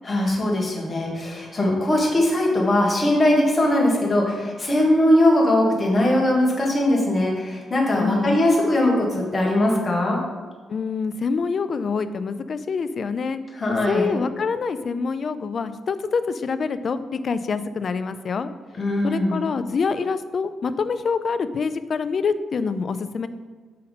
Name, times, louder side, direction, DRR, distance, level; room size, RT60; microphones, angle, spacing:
voice 1, 0.0-10.2 13.5-14.2 18.8-19.5, left 1 dB, 25° left, -2 dB, 1.7 m, -20 dB
voice 2, 8.0-8.4 10.7-13.4 13.7-18.5 19.0-23.3, left 5 dB, 50° left, 12 dB, 0.4 m, -26 dB
5.5 x 5.2 x 4.1 m, 1.5 s
cardioid pair, 105°, 0 cm